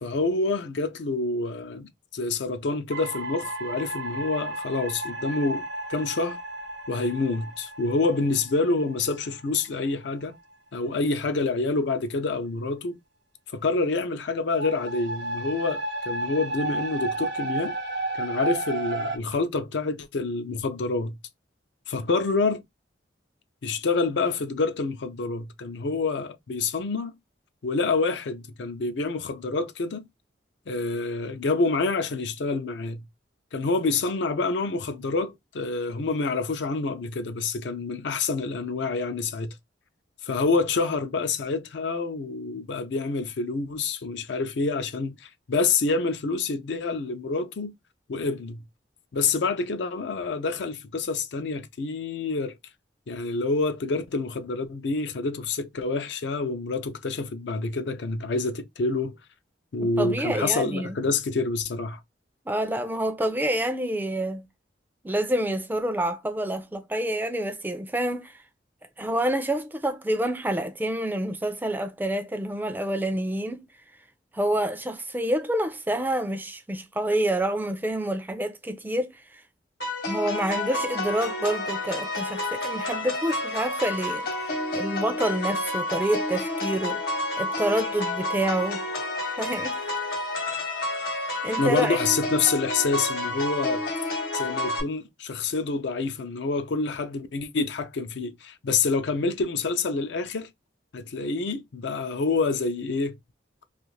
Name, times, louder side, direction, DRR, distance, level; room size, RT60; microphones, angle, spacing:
voice 1, 0.0-5.6 5.9-6.4 6.9-10.4 10.7-13.0 13.5-17.7 18.2-21.2 21.9-22.6 23.6-27.1 27.6-30.1 30.7-33.0 33.5-39.5 40.2-47.7 48.1-48.6 49.1-52.6 53.1-59.2 59.7-62.0 91.6-93.8 94.3-100.5 100.9-103.2, left 3 dB, 70° left, 0.5 m, -27 dB
sound 1, 2.9-10.5 14.5-19.2, right 2 dB, 70° right, 0.7 m, -33 dB
voice 2, 59.8-61.0 62.5-64.4 65.0-68.4 69.0-73.7 74.3-79.4 80.0-87.0 87.4-88.8 89.4-89.9 91.4-92.0, right 1 dB, 10° right, 0.3 m, -28 dB
sound 2, 79.8-94.8, left 2 dB, 50° left, 0.9 m, -30 dB
2.4 x 2.4 x 3.0 m
head